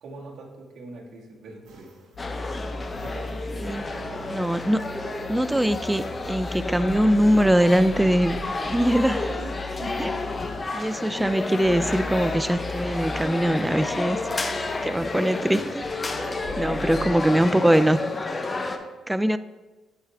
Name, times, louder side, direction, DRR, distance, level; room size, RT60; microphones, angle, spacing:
voice 1, 0.0-1.9 2.4-2.5 2.8-4.4 4.9-5.0 9.2-10.6 16.9-17.5, right 1 dB, 65° right, -3 dB, 1.7 m, -42 dB
sound 1, 1.6-15.8, right 2 dB, 80° right, 1.9 m, -54 dB
sound 2, 2.1-10.6 11.6-15.0 15.8-17.1, left 1 dB, 50° left, 2.3 m, -38 dB
sound 3, 2.2-18.8, left 3 dB, 30° left, 0.7 m, -31 dB
voice 2, 4.3-4.8 5.3-9.3 10.0-10.1 10.7-14.2 14.8-15.9 16.2-18.0 19.1-19.4, equal, 5° right, 13 dB, 0.3 m, -22 dB
12.0 x 4.8 x 3.4 m, 1.2 s
cardioid pair, 90°, 0 cm